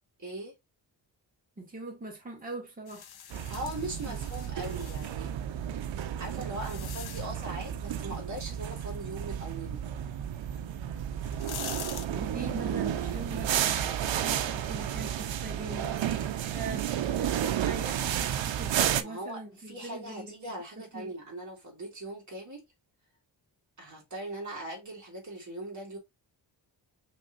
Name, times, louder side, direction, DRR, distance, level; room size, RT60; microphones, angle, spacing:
voice 1, 0.2-0.6 3.5-5.3 6.2-9.9 19.0-22.6 23.8-26.0, right 1 dB, 40° right, 2.6 m, -40 dB
voice 2, 1.6-3.1 4.0-4.2 12.1-20.3 20.9-21.1, right 2 dB, 20° right, 1.8 m, -42 dB
sound 1, 2.9-5.1 5.9-7.5 10.5-10.6 11.1-12.1, left 8 dB, 55° left, 0.7 m, -43 dB
sound 2, 3.3-19.0, right 10 dB, 80° right, 0.7 m, -32 dB
5.9 x 3.3 x 2.5 m
wide cardioid pair, 160°, 45 cm